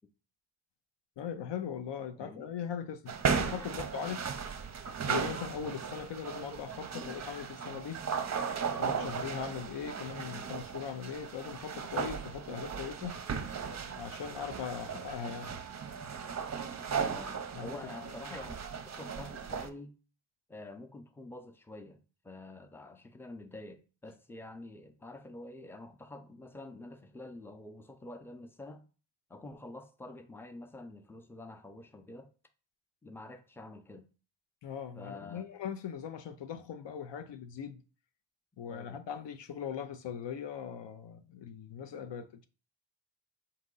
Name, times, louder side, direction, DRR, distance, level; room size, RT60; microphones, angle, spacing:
voice 1, 1.2-4.3 5.1-8.0 8.8-13.2 14.0-15.5 17.5-17.9 34.6-37.8 38.6-42.4, left 8 dB, 70° left, 0.6 m, -40 dB
voice 2, 2.2-2.5 3.6-3.7 4.0-4.3 6.9-7.2 10.2-10.6 17.0-19.9 20.5-28.8 29.3-32.3 33.0-34.1 35.0-35.5 38.7-39.0, left 2 dB, 5° left, 0.6 m, -48 dB
sound 1, 3.1-19.7, right 6 dB, 40° right, 0.6 m, -36 dB
3.8 x 2.8 x 3.8 m
cardioid pair, 50°, 44 cm